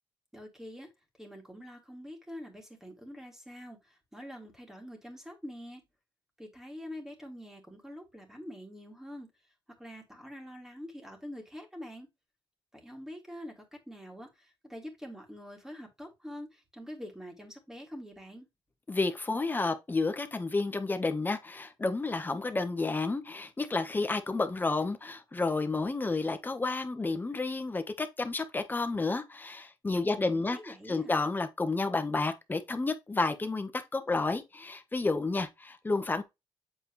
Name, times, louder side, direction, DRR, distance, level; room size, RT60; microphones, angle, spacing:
voice 1, 0.3-0.9 1.2-5.8 6.4-9.3 9.8-12.1 12.7-18.5 30.1-31.2, equal, 5° right, 2.9 m, -45 dB
voice 2, 18.9-36.2, left 3 dB, 20° left, 1.3 m, -31 dB
8.0 x 4.4 x 3.3 m
cardioid pair, 95°, 9 cm